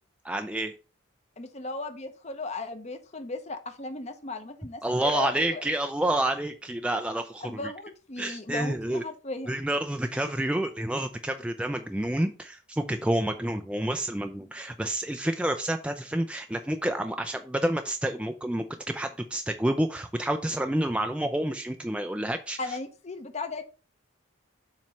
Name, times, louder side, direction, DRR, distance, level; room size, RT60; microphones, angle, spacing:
voice 1, 0.2-0.7 4.8-7.7 8.2-9.0 9.5-22.8, right 1 dB, 5° right, 0.3 m, -29 dB
voice 2, 1.4-5.6 7.4-9.5 22.6-23.6, left 3 dB, 30° left, 0.7 m, -36 dB
7.3 x 3.1 x 5.5 m
head